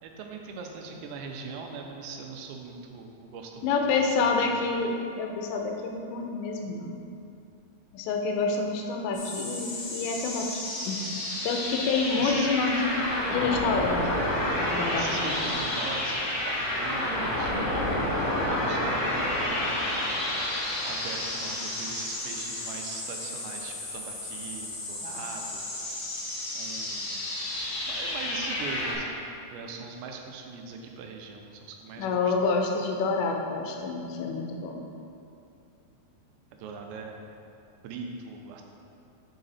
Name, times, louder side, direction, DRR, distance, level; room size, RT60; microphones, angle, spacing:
voice 1, 0.0-4.6 12.2-12.5 14.9-20.1 20.8-25.6 26.5-27.2 27.9-32.3 36.5-37.3 37.8-38.6, right 4 dB, 90° right, 2 dB, 2.9 m, -41 dB
voice 2, 3.6-6.9 7.9-11.0 11.4-12.9 13.3-14.2 14.6-15.5 32.0-34.8, left 4 dB, 85° left, 2 dB, 2.9 m, -28 dB
sound 1, 9.1-29.0, left 1 dB, 65° left, 3.1 m, -30 dB
7.7 x 4.9 x 4.1 m, 2.6 s
omnidirectional pair, 5.0 m